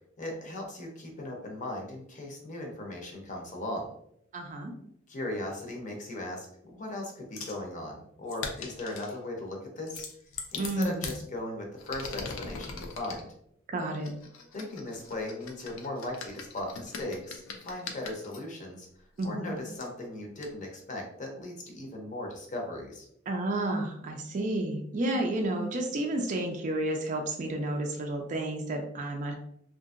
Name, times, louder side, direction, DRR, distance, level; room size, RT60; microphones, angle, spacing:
voice 1, 0.2-3.9 5.1-10.1 10.5-13.3 14.5-18.9 19.2-23.1, left 1 dB, 40° left, 1 dB, 0.6 m, -38 dB
voice 2, 4.3-4.7 10.6-11.1 13.7-14.1 19.2-19.6 23.3-29.3, right 1 dB, 40° right, 2 dB, 0.4 m, -31 dB
sound 1, 7.4-7.6 8.3-9.2 9.9-11.2 11.8-13.2 14.0-18.4 19.2-19.3 19.8-19.9 20.4-20.5, left 5 dB, 80° left, 0.5 m, -41 dB
2.8 x 2.5 x 2.4 m, 0.71 s
head